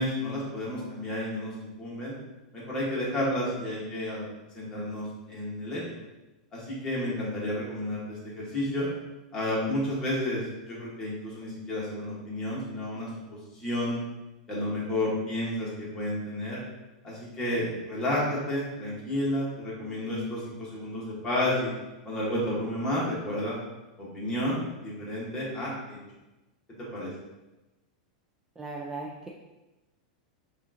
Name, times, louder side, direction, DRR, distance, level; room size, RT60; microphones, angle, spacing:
voice 1, 0.0-2.1 2.5-4.3 4.5-5.8 6.5-8.9 9.3-10.4 10.7-13.1 13.6-14.0 14.5-16.6 17.0-21.7 22.0-23.6 24.0-26.0 26.8-27.1, left 1 dB, 15° left, -6 dB, 1.4 m, -31 dB
voice 2, 28.6-29.3, right 3 dB, 10° right, -2 dB, 0.3 m, -37 dB
5.4 x 2.5 x 2.8 m, 1.0 s
supercardioid pair, 150°, 4 cm